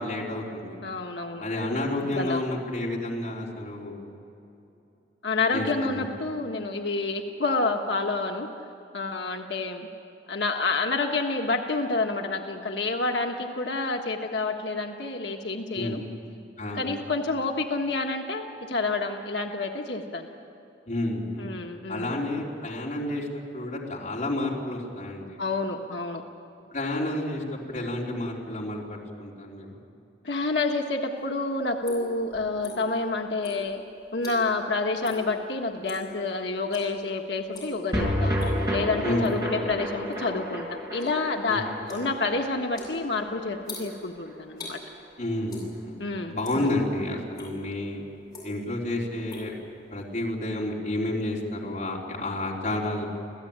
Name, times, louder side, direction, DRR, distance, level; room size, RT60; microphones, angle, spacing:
voice 1, 0.0-0.8 1.4-4.1 5.5-6.1 15.7-16.0 16.6-16.9 20.9-21.5 21.9-23.3 23.5-25.4 26.7-29.7 39.0-39.3 41.5-41.7 45.2-46.0 46.3-48.0 48.4-49.5 49.9-53.0, left 1 dB, 45° left, -3 dB, 4.0 m, -30 dB
voice 2, 0.8-1.5 2.0-2.4 5.2-8.5 8.9-9.9 10.3-16.0 16.7-20.3 21.4-22.2 25.4-26.2 30.2-33.8 34.1-38.4 38.7-44.8 46.0-46.8, left 3 dB, 75° left, 3 dB, 1.4 m, -29 dB
sound 1, 31.2-33.0 33.4-34.7 35.0-35.3 35.6-36.1 36.7-37.0 37.4-37.8 38.2-38.7 39.2-40.3 40.6-44.8 45.5-46.0 46.3-46.9 47.3-47.5 48.1-48.8 49.0-50.2, left 2 dB, 20° left, 7.8 m, -43 dB
sound 2, 37.9-44.4 44.6-44.7 45.0-45.1, equal, 20° right, 6.0 m, -31 dB
27.0 x 16.5 x 8.8 m, 2.8 s
head